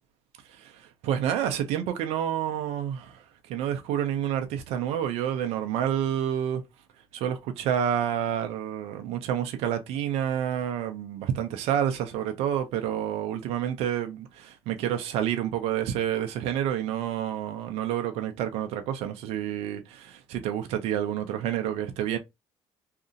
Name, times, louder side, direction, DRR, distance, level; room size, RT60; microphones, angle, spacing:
voice 1, 0.5-6.6 7.1-22.2, right 10 dB, 75° right, 0.6 m, -29 dB
2.7 x 2.5 x 2.5 m
supercardioid pair, 75°, 11 cm